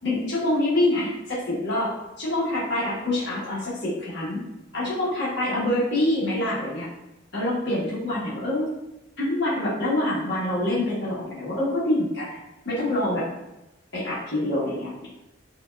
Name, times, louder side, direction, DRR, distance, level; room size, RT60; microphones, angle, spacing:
voice 1, 0.0-4.4 4.7-6.9 7.3-8.7 9.2-12.3 12.6-13.2 13.9-15.1, left 1 dB, 60° left, -8 dB, 1.2 m, -26 dB
5.1 x 2.4 x 2.2 m, 0.94 s
head